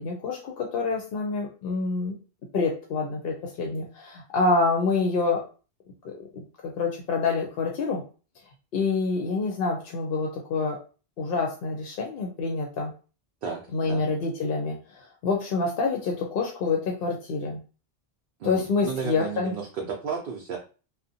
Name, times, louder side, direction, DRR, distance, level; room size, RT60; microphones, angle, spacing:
voice 1, 0.0-2.2 2.5-5.4 6.0-6.4 6.8-8.0 8.7-10.8 11.2-12.9 13.7-17.6 18.4-19.6, left 4 dB, 65° left, 1 dB, 0.7 m, -27 dB
voice 2, 13.4-14.0 18.4-20.6, right 5 dB, 65° right, 0 dB, 0.7 m, -33 dB
2.5 x 2.0 x 2.6 m, 0.35 s
omnidirectional pair, 1.1 m